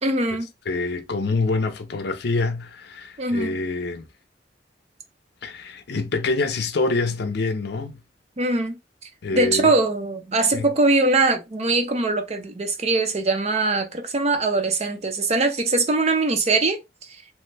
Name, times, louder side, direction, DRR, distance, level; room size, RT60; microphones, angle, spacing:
voice 1, 0.0-0.5 3.2-3.6 8.4-8.8 9.3-16.8, right 3 dB, 40° right, 0.6 m, -22 dB
voice 2, 0.7-4.1 5.4-8.0 9.2-9.7 10.5-10.6, left 3 dB, 65° left, 0.5 m, -26 dB
3.1 x 2.1 x 3.2 m
head